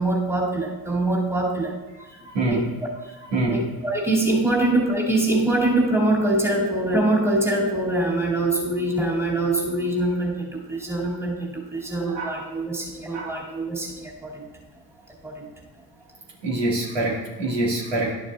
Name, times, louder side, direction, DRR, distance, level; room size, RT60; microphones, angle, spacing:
voice 1, 0.0-1.8 2.4-2.6 3.5-14.4 15.2-15.5, right 2 dB, 5° right, -4 dB, 2.3 m, -24 dB
voice 2, 2.1-2.7 3.3-3.7 12.1-12.4 13.1-13.4 16.4-18.1, right 2 dB, 60° right, -4 dB, 2.0 m, -25 dB
11.0 x 6.8 x 2.3 m, 1.2 s
hypercardioid pair, 55°, 48 cm